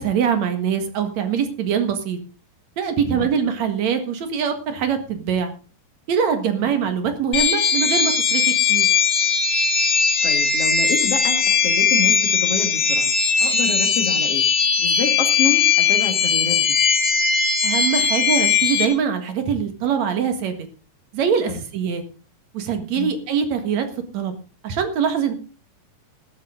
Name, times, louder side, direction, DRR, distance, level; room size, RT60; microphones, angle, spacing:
voice 1, 0.0-2.2 2.8-5.5 6.1-8.9 17.6-20.6 21.1-22.0 22.5-23.9 24.1-24.3 24.6-25.3, right 7 dB, 60° right, 7 dB, 2.8 m, -23 dB
sound 1, 7.3-18.9, left 6 dB, 85° left, 3.4 m, -19 dB
voice 2, 10.2-13.1 13.4-14.4 14.8-16.8 21.5-21.6 22.9-23.1, left 5 dB, 50° left, 6 dB, 2.5 m, -28 dB
14.5 x 12.0 x 3.8 m, 0.35 s
omnidirectional pair, 3.9 m